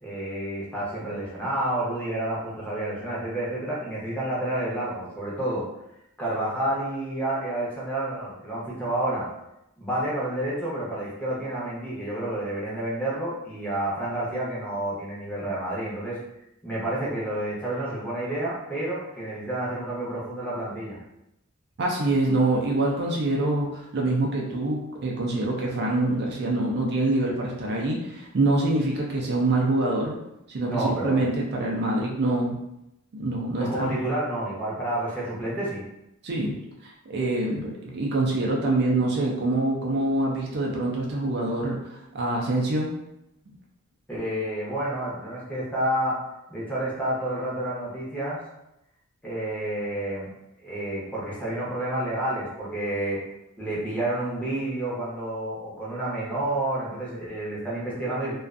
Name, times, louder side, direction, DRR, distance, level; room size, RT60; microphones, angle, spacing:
voice 1, 0.0-5.6 6.2-9.3 9.8-16.2 16.6-21.0 30.7-31.3 33.6-35.8 44.1-46.2 46.5-48.4 49.2-50.3 50.6-53.2 53.6-58.3, right 1 dB, 5° left, -7 dB, 0.7 m, -29 dB
voice 2, 21.8-30.2 30.5-32.6 33.1-34.0 36.2-36.5 36.8-42.9, right 2 dB, 50° right, -2 dB, 0.4 m, -25 dB
2.4 x 2.2 x 2.4 m, 0.87 s
head